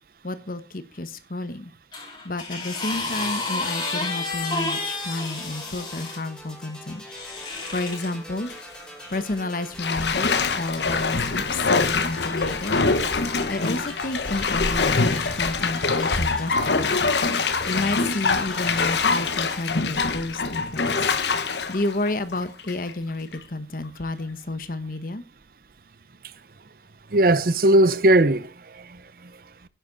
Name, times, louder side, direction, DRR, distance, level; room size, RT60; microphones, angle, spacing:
voice 1, 0.2-1.7 2.2-7.0 7.4-8.5 9.1-12.8 13.5-17.1 17.7-21.1 21.7-25.2, left 2 dB, 50° left, 1.1 m, -31 dB
sound 1, 1.9-6.2 7.1-8.1 9.0-9.2, left 3 dB, 25° left, 5.4 m, -30 dB
sound 2, 3.6-19.6, equal, 5° left, 4.3 m, -43 dB
Bathtub (filling or washing), 7.6-8.0 8.5-8.6 9.8-22.9 23.3-23.4, left 4 dB, 80° left, 1.2 m, -24 dB
voice 2, 27.1-29.7, right 1 dB, 55° right, 0.7 m, -20 dB
10.5 x 9.7 x 4.0 m
head